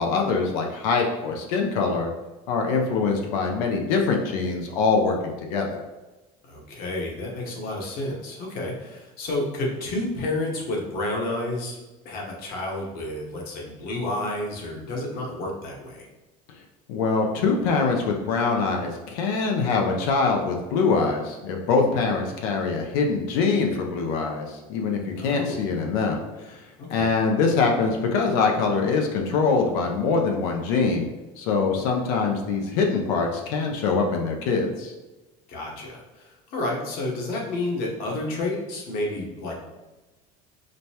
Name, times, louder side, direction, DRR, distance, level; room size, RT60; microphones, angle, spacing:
voice 1, 0.0-2.1 2.5-5.8 16.9-26.6 26.9-31.1 31.4-34.9, left 4 dB, 80° left, 2 dB, 0.6 m, -24 dB
voice 2, 6.4-11.8 12.0-16.1 25.2-25.6 26.8-27.1 35.5-39.5, left 2 dB, 55° left, -1 dB, 1.1 m, -30 dB
5.1 x 2.1 x 2.8 m, 1.1 s
supercardioid pair, 125°, 18 cm